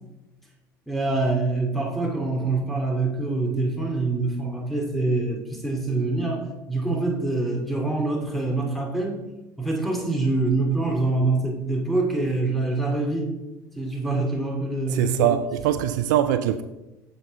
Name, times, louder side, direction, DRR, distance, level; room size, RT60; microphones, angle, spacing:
voice 1, 0.9-9.2 9.6-13.3 13.8-15.3, right 2 dB, ahead, 2.3 m, -25 dB
voice 2, 14.9-16.6, right 11 dB, 65° right, 0.4 m, -22 dB
9.6 x 7.0 x 3.3 m
figure-of-eight pair, 65°, 11 cm